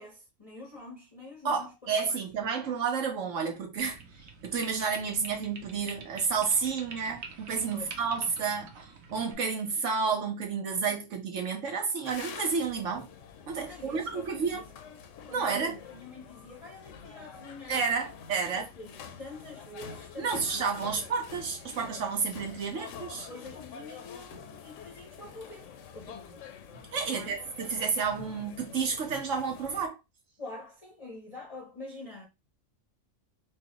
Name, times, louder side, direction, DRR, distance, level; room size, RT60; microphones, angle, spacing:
voice 1, 0.0-2.3 7.7-8.0 13.6-14.7 15.3-17.8 18.5-21.0 23.1-26.4 27.1-27.4 30.4-32.3, left 3 dB, 35° left, 0.6 m, -46 dB
voice 2, 1.4-4.0 4.4-13.1 13.5-14.6 15.3-15.8 17.7-18.7 20.2-23.3 26.9-30.0, right 5 dB, 70° right, 1.4 m, -31 dB
sound 1, 3.8-9.3, right 5 dB, 90° right, 1.1 m, -47 dB
sound 2, 12.0-29.9, left 6 dB, 75° left, 0.9 m, -47 dB
4.5 x 2.3 x 2.9 m
omnidirectional pair, 1.4 m